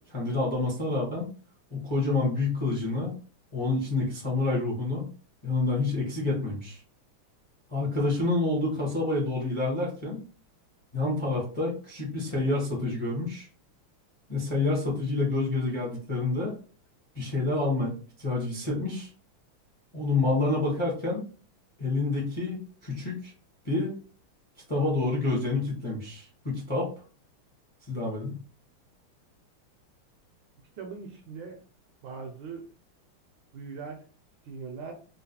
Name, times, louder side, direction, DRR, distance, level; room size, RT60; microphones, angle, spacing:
voice 1, 0.1-1.2 1.7-3.1 3.5-5.1 5.4-6.8 7.7-10.2 10.9-13.5 14.3-16.5 17.1-17.9 18.2-19.1 19.9-21.2 21.8-23.3 23.6-23.9 24.7-26.9 27.9-28.4, left 2 dB, 25° left, -4 dB, 0.6 m, -28 dB
voice 2, 30.8-31.6 32.0-32.7 33.5-34.0 34.4-34.9, right 5 dB, 75° right, 3 dB, 1.2 m, -40 dB
3.8 x 2.3 x 2.8 m, 0.38 s
omnidirectional pair, 2.4 m